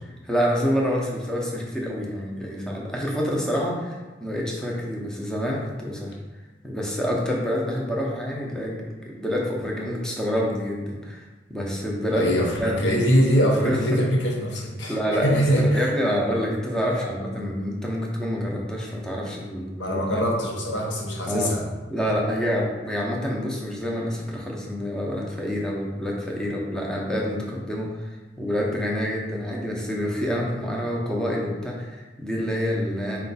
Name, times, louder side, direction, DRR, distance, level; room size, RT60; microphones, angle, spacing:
voice 1, 0.1-6.1 6.6-12.3 12.6-12.7 13.6-14.0 14.9-20.0 21.3-21.5 21.9-33.2, equal, 5° left, -3 dB, 0.6 m, -27 dB
voice 2, 12.1-15.0 15.2-15.9 19.8-21.6, equal, 75° left, -1 dB, 0.8 m, -22 dB
4.4 x 2.3 x 3.9 m, 1.2 s
head